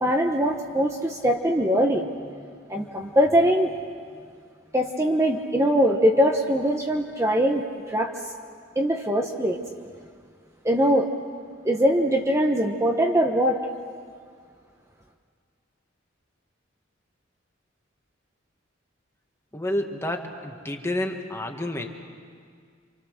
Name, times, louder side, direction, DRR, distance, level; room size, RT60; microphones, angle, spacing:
voice 1, 0.0-2.1 2.7-3.7 4.7-7.6 7.9-8.1 8.8-9.6 10.6-11.1 11.6-13.6, equal, 15° right, 2 dB, 1.1 m, -22 dB
voice 2, 19.5-21.9, left 1 dB, 15° left, 3 dB, 1.7 m, -29 dB
28.0 x 26.0 x 6.6 m, 2.1 s
head